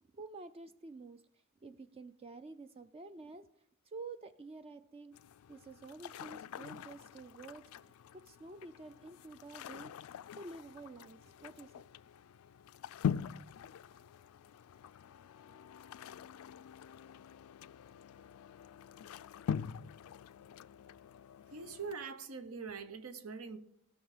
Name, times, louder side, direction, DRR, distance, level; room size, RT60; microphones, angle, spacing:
voice 1, 0.1-1.2 1.6-3.5 3.8-5.1 5.5-7.6 8.1-9.9 10.4-11.7, right 3 dB, 25° right, 0.4 m, -49 dB
sound 1, 5.1-22.0, left 8 dB, 70° left, 0.3 m, -44 dB
voice 2, 21.5-23.6, right 5 dB, 80° right, 0.9 m, -43 dB
16.5 x 6.2 x 4.9 m
head